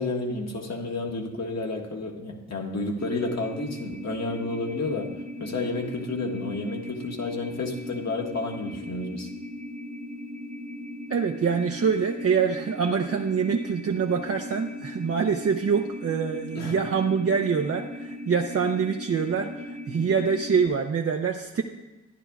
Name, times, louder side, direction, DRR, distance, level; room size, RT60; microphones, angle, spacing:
voice 1, 0.0-5.1 5.4-9.3 16.5-16.7, left 2 dB, 65° left, 1 dB, 1.5 m, -31 dB
sound 1, 3.0-20.7, left 1 dB, 25° right, 1.1 m, -38 dB
voice 2, 11.1-21.6, right 6 dB, 55° right, 3 dB, 0.6 m, -25 dB
12.0 x 9.9 x 2.4 m, 1.1 s
cardioid pair, 50°, 29 cm